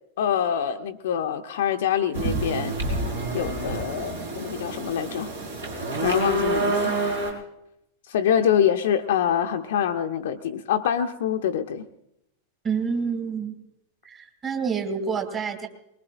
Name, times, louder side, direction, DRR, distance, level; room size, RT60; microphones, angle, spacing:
voice 1, 0.2-2.7 3.3-5.3 6.0-7.0 8.1-11.9, left 9 dB, 55° left, 5 dB, 0.7 m, -25 dB
sound 1, 2.1-7.3, right 2 dB, 70° right, 4.2 m, -27 dB
voice 2, 12.6-13.5 14.0-15.7, right 6 dB, 25° right, 6 dB, 2.6 m, -28 dB
23.5 x 21.0 x 2.5 m, 0.82 s
figure-of-eight pair, 90°, 0 cm